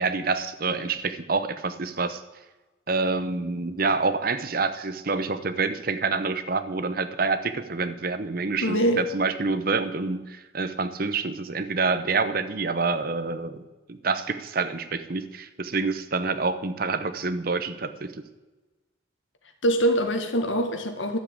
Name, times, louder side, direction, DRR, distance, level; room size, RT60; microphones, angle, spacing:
voice 1, 0.0-2.2 2.9-18.2, right 4 dB, 50° right, 12 dB, 0.8 m, -27 dB
voice 2, 8.6-9.0 19.6-21.2, right 1 dB, 80° left, 6 dB, 1.7 m, -23 dB
12.0 x 7.6 x 8.3 m, 1.2 s
head